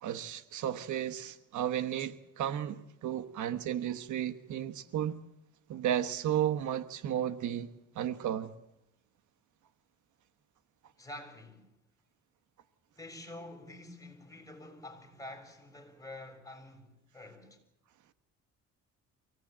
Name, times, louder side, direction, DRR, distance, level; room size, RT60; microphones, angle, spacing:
voice 1, 0.0-5.1 5.7-7.7 8.0-8.5, right 10 dB, 75° right, 1.2 m, -33 dB
voice 2, 11.0-11.7 12.9-17.6, left 1 dB, 10° left, 6.5 m, -48 dB
24.5 x 18.0 x 8.7 m
cardioid pair, 90°, 30 cm